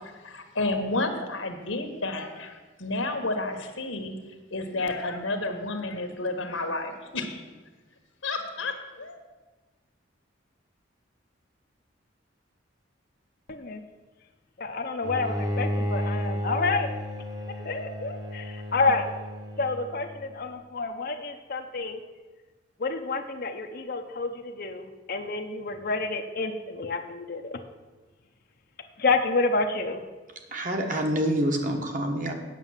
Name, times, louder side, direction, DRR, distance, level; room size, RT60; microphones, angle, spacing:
voice 1, 0.0-4.1 4.5-7.4 8.2-9.2, left 2 dB, 75° left, 6 dB, 1.4 m, -31 dB
voice 2, 13.5-13.8 14.6-17.0 17.5-19.1 19.6-22.0 22.8-27.6 29.0-30.0, left 3 dB, 50° left, 6 dB, 0.7 m, -29 dB
Bowed string instrument, 15.0-20.2, equal, 20° right, 1.0 m, -32 dB
voice 3, 30.5-32.3, right 1 dB, 40° right, 3 dB, 1.3 m, -27 dB
9.1 x 6.7 x 7.3 m, 1.3 s
head